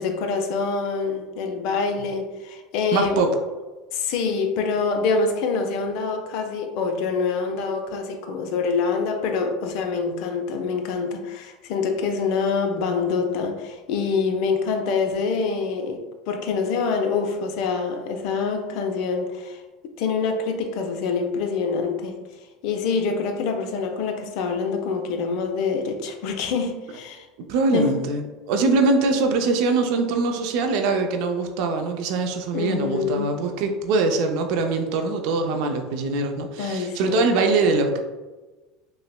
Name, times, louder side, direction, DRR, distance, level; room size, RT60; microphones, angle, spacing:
voice 1, 0.0-3.2 3.9-22.2 22.6-27.3 27.7-28.1 32.5-33.3 36.6-37.3, left 5 dB, 65° left, 0.5 m, -25 dB
voice 2, 2.9-3.3 27.5-38.0, right 3 dB, 65° right, 0.4 m, -22 dB
5.4 x 2.0 x 2.2 m
supercardioid pair, 100°, 0 cm